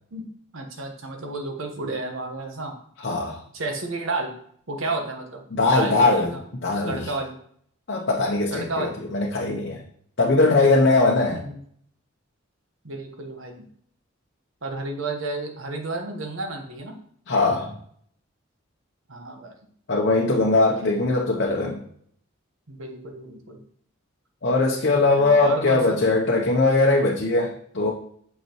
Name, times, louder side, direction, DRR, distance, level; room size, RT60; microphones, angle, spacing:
voice 1, 0.5-2.7 3.5-4.4 4.7-6.4 6.8-7.4 8.5-9.0 11.3-11.6 12.8-13.6 14.6-17.0 19.1-19.5 20.6-20.9 22.7-23.6 24.9-26.0, right 2 dB, 75° right, 3 dB, 1.1 m, -32 dB
voice 2, 3.0-3.4 5.5-6.3 6.6-7.1 7.9-9.8 10.2-11.4 17.3-17.8 19.9-21.8 24.4-27.9, left 3 dB, 55° left, -1 dB, 0.8 m, -20 dB
6.6 x 5.5 x 3.0 m, 0.64 s
head